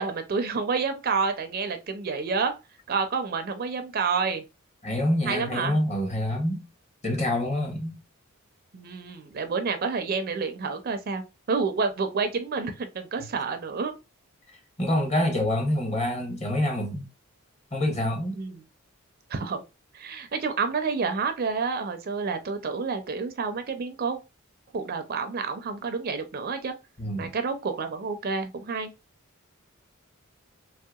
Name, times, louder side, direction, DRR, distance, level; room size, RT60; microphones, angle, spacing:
voice 1, 0.0-2.6 2.9-4.4 5.2-5.8 8.7-13.9 18.3-18.6 19.3-19.6 19.9-24.2 24.7-26.7 27.2-28.9, right 4 dB, 45° right, 0.4 m, -29 dB
voice 2, 4.8-6.6 7.0-7.9 14.8-17.1 17.7-18.4 27.0-27.3, left 1 dB, 30° left, 0.9 m, -26 dB
3.2 x 2.7 x 2.3 m
head